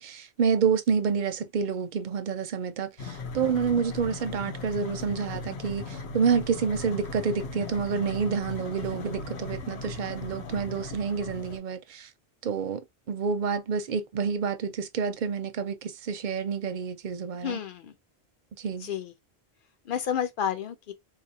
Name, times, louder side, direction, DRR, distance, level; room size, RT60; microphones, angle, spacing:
voice 1, 0.0-12.1 12.4-17.6 18.6-18.9, right 6 dB, 55° right, 0.6 m, -28 dB
sound 1, 3.0-11.6, left 3 dB, 90° left, 1.0 m, -38 dB
voice 2, 17.4-17.9 18.8-19.1 19.9-20.9, left 9 dB, 60° left, 0.8 m, -30 dB
3.8 x 2.3 x 2.7 m
omnidirectional pair, 1.1 m